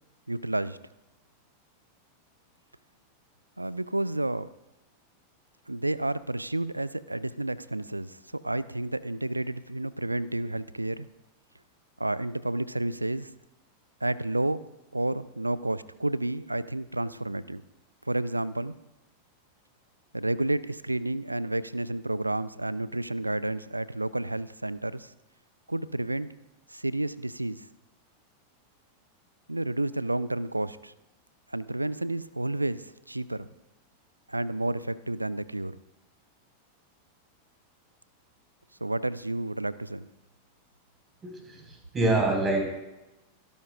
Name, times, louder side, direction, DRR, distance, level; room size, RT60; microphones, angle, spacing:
voice 1, 0.3-0.8 3.6-4.5 5.7-11.1 12.0-13.3 14.0-14.6 14.9-17.6 18.1-18.7 20.1-25.1 25.7-26.3 26.7-27.7 29.5-30.9 31.5-33.5 34.3-35.8 38.8-40.1, right 1 dB, 85° right, 18 dB, 0.5 m, -30 dB
voice 2, 41.2-42.7, right 2 dB, 20° right, 1 dB, 5.2 m, -26 dB
28.0 x 12.5 x 2.5 m, 0.98 s
figure-of-eight pair, 90°, 0 cm